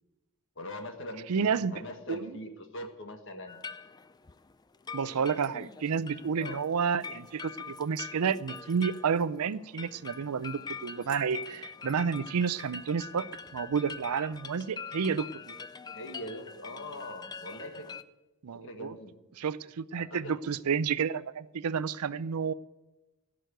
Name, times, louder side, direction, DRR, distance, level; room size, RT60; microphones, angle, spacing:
voice 1, 0.6-3.6 6.3-6.6 15.9-17.9 18.5-19.2 20.0-20.4, left 1 dB, 55° left, 5 dB, 1.6 m, -42 dB
voice 2, 1.3-1.8 2.1-2.3 4.9-13.3 13.5-15.5 18.4-18.9 19.4-22.5, right 6 dB, 85° right, 17 dB, 0.5 m, -30 dB
sound 1, 3.5-18.0, left 5 dB, 20° left, 0.3 m, -44 dB
14.5 x 6.3 x 9.3 m, 1.1 s
head